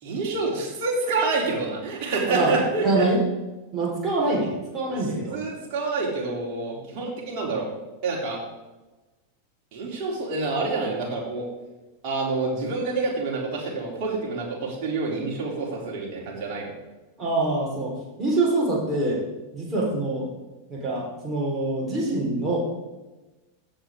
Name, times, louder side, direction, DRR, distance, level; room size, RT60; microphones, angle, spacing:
voice 1, 0.0-3.1 4.9-5.0 5.3-7.7 8.0-8.4 9.7-11.5 12.0-16.7, right 3 dB, 40° right, -3 dB, 3.4 m, -27 dB
voice 2, 2.3-3.2 3.7-5.4 17.2-17.9 18.2-19.2 19.5-20.3 20.7-22.6, right 2 dB, 20° right, -3 dB, 4.1 m, -25 dB
14.0 x 7.7 x 3.7 m, 1.1 s
figure-of-eight pair, 90°, 0 cm